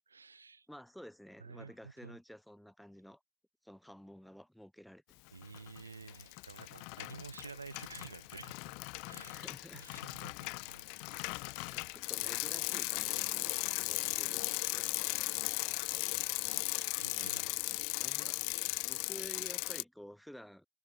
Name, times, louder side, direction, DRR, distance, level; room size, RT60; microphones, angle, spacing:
voice 1, 0.0-0.7 1.4-2.2 5.3-8.7 9.0-9.4 9.7-10.9 16.3-17.5, right 4 dB, 75° right, 7.8 m, -51 dB
voice 2, 0.7-3.2 3.6-5.4 9.3-10.1 11.7-15.9 17.1-17.5 18.0-18.4 18.8-20.7, equal, ahead, 5.5 m, -52 dB
Bicycle, 5.4-5.8 6.1-19.8, left 37 dB, 45° left, 0.9 m, -37 dB
figure-of-eight pair, 90°, 0 cm